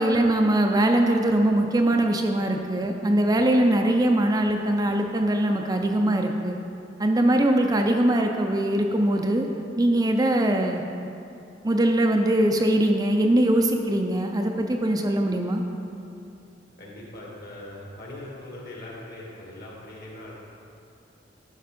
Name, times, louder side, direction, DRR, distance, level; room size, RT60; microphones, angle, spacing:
voice 1, 0.0-6.6 7.0-9.5 9.8-10.8 11.6-15.6, right 1 dB, 20° right, 3 dB, 0.5 m, -22 dB
voice 2, 16.8-20.3, left 1 dB, 55° left, -3 dB, 2.0 m, -41 dB
11.0 x 5.3 x 5.1 m, 2.6 s
head